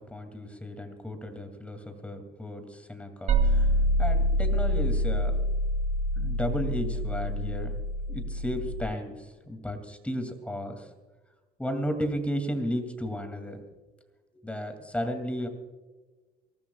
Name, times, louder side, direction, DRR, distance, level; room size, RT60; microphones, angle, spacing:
voice 1, 0.0-3.7 4.0-5.4 6.1-7.7 8.1-10.9 11.6-13.6 14.4-15.5, equal, 5° left, 6 dB, 2.5 m, -34 dB
sound 1, 3.3-8.8, equal, 45° right, 2.4 m, -26 dB
23.5 x 18.5 x 2.4 m, 1.3 s
cardioid pair, 110°, 17 cm